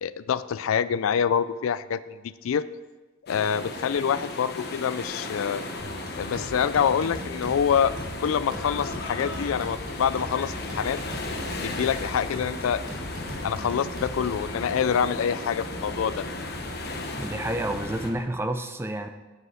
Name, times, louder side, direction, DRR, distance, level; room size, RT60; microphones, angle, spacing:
voice 1, 0.0-2.7 3.3-5.6 6.2-7.9 8.2-11.0 11.6-12.8 13.4-16.2, left 7 dB, 80° left, 16 dB, 0.4 m, -26 dB
sound 1, 3.3-18.1, left 2 dB, 50° left, 1.1 m, -36 dB
sound 2, 5.8-14.5, equal, 40° right, 2.5 m, -40 dB
sound 3, 7.0-18.2, right 1 dB, 60° right, 1.2 m, -42 dB
voice 2, 17.2-19.1, right 1 dB, 10° right, 7 dB, 0.5 m, -29 dB
9.6 x 8.0 x 4.9 m, 1.2 s
head